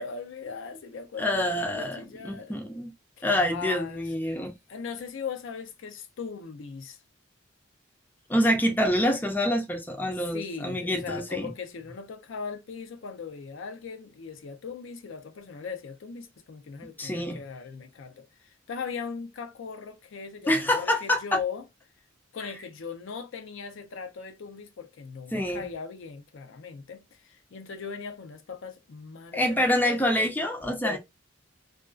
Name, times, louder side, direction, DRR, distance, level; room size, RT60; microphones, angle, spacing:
voice 1, 0.0-2.6 3.2-4.4 4.7-7.0 10.3-21.7 22.3-30.3 30.8-31.0, left 5 dB, 70° left, 0.4 m, -39 dB
voice 2, 1.2-2.9 3.2-4.5 8.3-11.5 17.0-17.4 20.5-21.4 25.3-25.7 29.3-31.0, left 1 dB, 10° left, 0.4 m, -26 dB
2.4 x 2.3 x 2.2 m
head